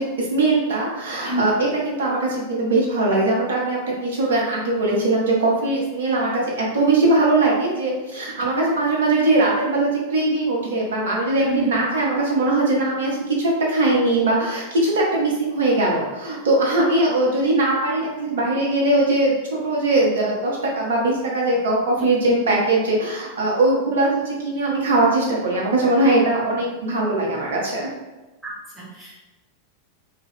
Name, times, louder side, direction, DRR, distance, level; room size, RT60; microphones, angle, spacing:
voice 1, 0.0-27.9, right 2 dB, 60° right, -3 dB, 0.7 m, -21 dB
voice 2, 11.4-11.8 22.0-22.4 28.4-29.2, right 1 dB, 5° right, -8 dB, 1.2 m, -30 dB
2.7 x 2.3 x 3.4 m, 1.1 s
figure-of-eight pair, 90°, 0 cm